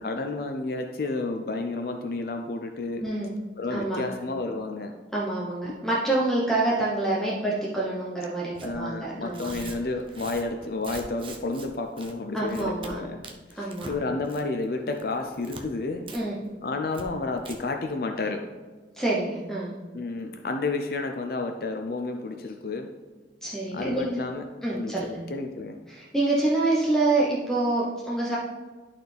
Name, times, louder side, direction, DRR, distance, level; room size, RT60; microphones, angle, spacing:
voice 1, 0.0-3.0 3.6-4.9 5.7-5.8 8.6-13.2 13.5-16.0 16.6-18.4 19.9-22.9 23.7-24.4 24.7-25.8, left 3 dB, 55° left, 4 dB, 0.5 m, -31 dB
voice 2, 3.0-3.3 3.7-4.0 5.1-9.5 12.3-13.0 13.6-13.9 16.1-16.4 18.9-19.7 23.4-24.2 24.6-25.2 25.9-28.4, right 2 dB, 5° left, -5 dB, 0.8 m, -27 dB
Tearing, 8.5-8.7 9.2-11.7 12.0-12.1 12.5-12.9 13.2-14.0 14.2-14.6 14.9-15.6 16.1-16.2 16.5-16.6 16.9-17.0 17.4-17.5, right 3 dB, 30° right, 0.7 m, -42 dB
11.5 x 4.2 x 3.4 m, 1.4 s
head